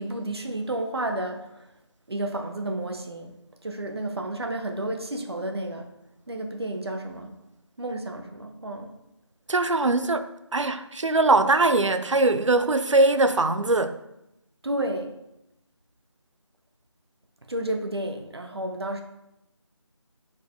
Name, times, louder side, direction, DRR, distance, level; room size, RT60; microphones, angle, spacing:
voice 1, 0.0-1.7 2.1-3.3 3.6-5.8 6.3-7.3 7.8-8.9 14.6-15.1 17.5-19.0, right 1 dB, 55° right, 0.8 m, -31 dB
voice 2, 9.5-14.0, right 2 dB, 85° right, 0.5 m, -21 dB
9.3 x 4.1 x 2.5 m
figure-of-eight pair, 165°, 15 cm